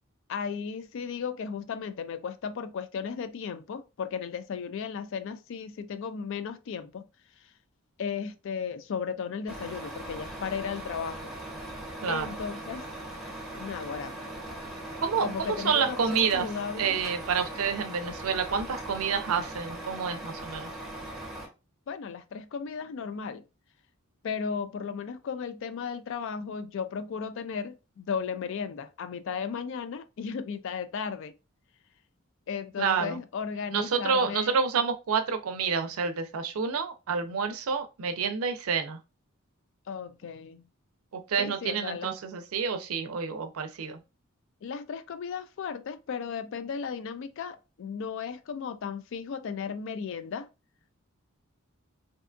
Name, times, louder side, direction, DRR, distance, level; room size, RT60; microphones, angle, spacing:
voice 1, 0.3-7.0 8.0-11.3 12.1-12.9 13.6-14.2 15.2-17.0 21.9-23.4 24.2-31.3 32.5-34.6 39.9-40.6 41.4-42.1 44.6-50.5, left 6 dB, 60° left, 0.3 m, -35 dB
Truck, 9.5-21.5, right 1 dB, ahead, 1.0 m, -40 dB
voice 2, 12.0-12.3 15.0-16.5 16.8-20.7 32.8-33.2 33.7-39.0 41.1-44.0, right 6 dB, 80° right, 0.5 m, -29 dB
2.6 x 2.3 x 2.5 m
head